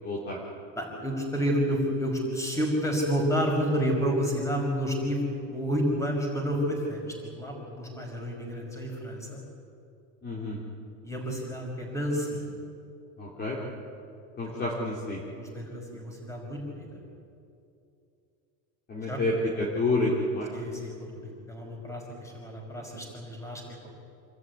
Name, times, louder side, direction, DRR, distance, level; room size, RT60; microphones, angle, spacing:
voice 1, 0.0-0.4 10.2-10.6 13.2-13.6 14.4-15.2 18.9-20.5, left 2 dB, 25° left, -4 dB, 3.5 m, -29 dB
voice 2, 0.8-9.4 11.0-12.4 14.4-14.6 15.3-16.9 19.0-19.2 20.5-23.6, equal, 5° left, 0 dB, 5.8 m, -30 dB
27.0 x 13.5 x 9.7 m, 2.6 s
supercardioid pair, 140°, 38 cm